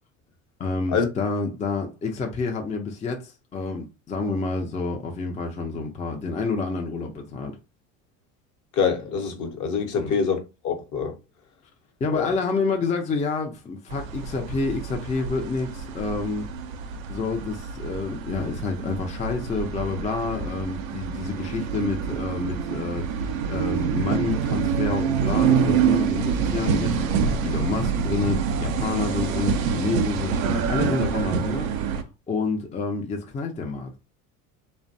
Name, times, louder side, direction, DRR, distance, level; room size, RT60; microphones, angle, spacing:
voice 1, 0.6-7.6 9.9-10.1 12.0-16.5 17.1-32.0 32.3-33.9, left 4 dB, 20° left, 0.4 m, -28 dB
voice 2, 8.8-10.4 10.6-11.1 12.1-12.3, left 6 dB, 50° left, 0.9 m, -25 dB
sound 1, 13.9-32.0, right 7 dB, 90° right, 0.5 m, -26 dB
2.5 x 2.1 x 2.6 m
hypercardioid pair, 75°, 40 cm